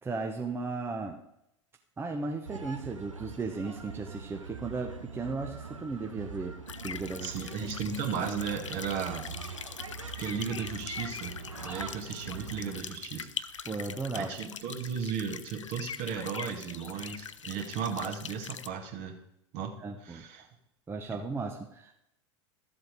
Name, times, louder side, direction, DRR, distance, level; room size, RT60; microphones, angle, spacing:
voice 1, 0.0-1.2 2.0-6.6 6.8-7.3 13.7-14.3 19.8-20.2 20.9-21.9, right 3 dB, 15° right, 3 dB, 0.9 m, -35 dB
sound 1, 2.4-12.8, right 4 dB, 80° right, 1.1 m, -43 dB
sound 2, 6.7-18.7, left 7 dB, 75° left, 0.5 m, -42 dB
voice 2, 7.2-9.3 10.2-13.7 14.1-19.2 19.5-20.5, right 6 dB, 45° right, 4 dB, 2.0 m, -35 dB
13.0 x 7.5 x 4.8 m, 0.80 s
figure-of-eight pair, 85°, 16 cm